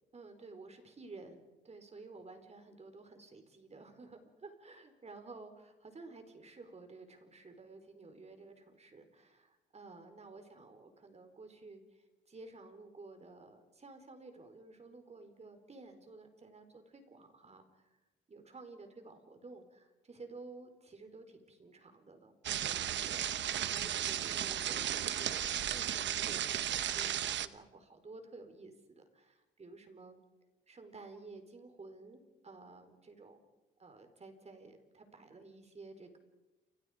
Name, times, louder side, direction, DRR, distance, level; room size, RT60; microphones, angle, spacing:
voice 1, 0.1-18.0 18.3-30.2 30.7-33.4 33.8-36.2, right 3 dB, 35° right, 7 dB, 4.4 m, -53 dB
sound 1, 22.4-27.5, right 10 dB, 65° right, 1.0 m, -35 dB
29.5 x 24.5 x 5.1 m, 1.1 s
cardioid pair, 90°, 20 cm